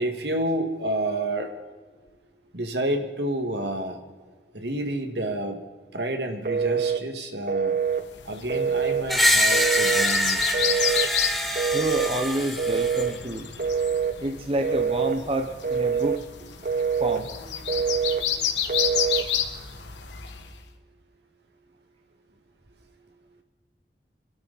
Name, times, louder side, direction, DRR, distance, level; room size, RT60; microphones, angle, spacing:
voice 1, 0.0-1.5 2.5-4.0 4.5-5.6 5.9-7.8 8.2-10.5, right 1 dB, 75° right, 4 dB, 2.1 m, -29 dB
Telephone, 6.5-7.0 7.5-8.0 8.5-9.1 9.5-10.1 10.5-11.1 11.6-12.1 12.6-13.1 13.6-14.2 14.6-15.2 15.6-16.2 16.6-17.2 17.7-18.2 18.7-19.3, right 6 dB, 45° right, 0.6 m, -25 dB
sound 1, 8.1-20.5, left 9 dB, 90° left, 1.7 m, -31 dB
Screech, 9.1-13.1, equal, ahead, 1.7 m, -24 dB
voice 2, 11.7-13.5 14.2-16.2 17.0-17.3, right 1 dB, 30° right, 5 dB, 1.1 m, -28 dB
26.0 x 12.0 x 4.2 m, 1.4 s
head